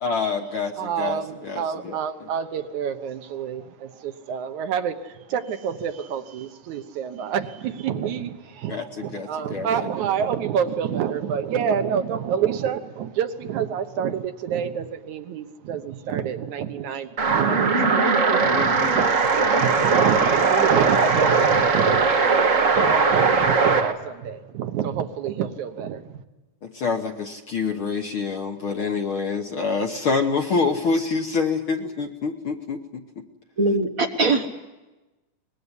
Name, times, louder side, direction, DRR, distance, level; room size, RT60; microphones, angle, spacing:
voice 1, 0.0-2.0 8.7-9.7 26.6-33.0, left 4 dB, 60° left, 4 dB, 1.5 m, -26 dB
voice 2, 0.7-26.2, right 8 dB, 70° right, 8 dB, 2.4 m, -28 dB
sound 1, 17.2-23.9, right 4 dB, 55° right, 0.8 m, -19 dB
voice 3, 33.6-34.5, right 2 dB, 90° right, 3 dB, 0.7 m, -21 dB
23.5 x 21.0 x 9.7 m, 1.1 s
omnidirectional pair, 3.7 m